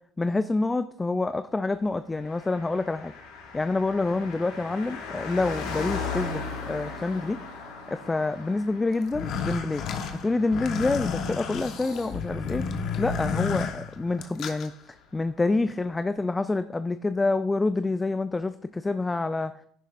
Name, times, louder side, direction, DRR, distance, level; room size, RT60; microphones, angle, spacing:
voice 1, 0.2-3.1 3.5-7.4 7.9-9.8 10.1-12.6 13.0-14.7 15.1-19.5, left 3 dB, 15° left, 11 dB, 0.3 m, -27 dB
Car passing by, 2.2-14.0 14.3-14.4, left 4 dB, 85° left, 2.8 m, -39 dB
sound 1, 9.0-14.7, left 5 dB, 60° left, 1.2 m, -32 dB
11.0 x 9.8 x 2.5 m, 0.67 s
supercardioid pair, 100°, 0 cm